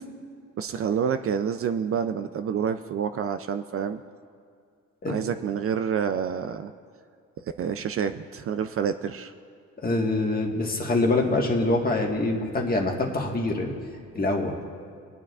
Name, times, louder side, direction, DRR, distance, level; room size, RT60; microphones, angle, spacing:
voice 1, 0.6-4.0 5.1-6.7 7.4-9.3, right 7 dB, 50° right, 10 dB, 0.4 m, -28 dB
voice 2, 9.8-13.7 14.1-14.5, left 2 dB, 30° left, 1 dB, 1.5 m, -25 dB
21.0 x 9.1 x 2.4 m, 2.3 s
cardioid pair, 90°, 30 cm